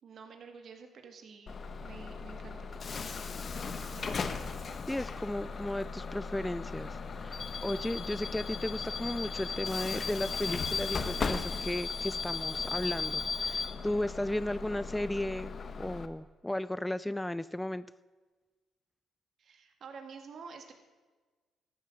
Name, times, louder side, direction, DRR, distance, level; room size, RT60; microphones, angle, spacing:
voice 1, 0.0-3.1 3.9-4.4 19.4-20.7, right 5 dB, 60° right, 5 dB, 1.9 m, -49 dB
Bus / Alarm, 1.5-16.1, left 5 dB, 45° left, 1.0 m, -36 dB
voice 2, 4.9-17.9, left 1 dB, 10° left, 17 dB, 0.3 m, -35 dB
14.0 x 9.2 x 6.5 m, 1.3 s
cardioid pair, 90°, 0 cm